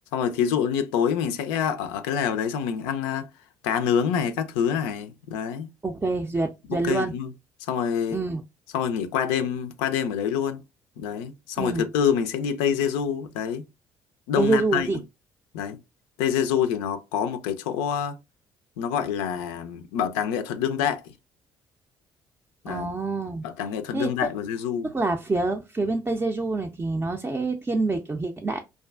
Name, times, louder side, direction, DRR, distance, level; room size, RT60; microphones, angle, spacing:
voice 1, 0.1-3.3 3.6-5.7 6.7-7.3 7.7-8.2 8.7-10.6 11.0-13.6 14.3-14.9 15.5-15.8 16.2-18.2 18.8-21.1 22.6-22.9 23.4-24.9, left 8 dB, 80° left, 0.4 m, -26 dB
voice 2, 5.8-7.1 8.1-8.4 11.6-11.8 14.4-15.0 22.7-23.5 23.9-24.1 24.9-28.6, right 3 dB, 20° right, 0.4 m, -26 dB
2.4 x 2.3 x 2.3 m
hypercardioid pair, 55°, 10 cm